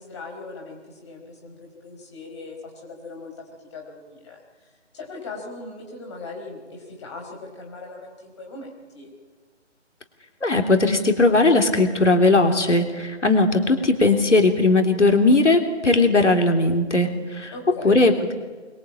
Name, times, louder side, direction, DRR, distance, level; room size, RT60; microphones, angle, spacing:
voice 1, 0.0-9.1 17.5-18.0, left 3 dB, 25° left, 0 dB, 4.8 m, -39 dB
voice 2, 10.4-17.5 17.8-18.3, left 2 dB, 75° left, 4 dB, 3.5 m, -18 dB
25.0 x 22.5 x 8.7 m, 1.4 s
figure-of-eight pair, 160°, 36 cm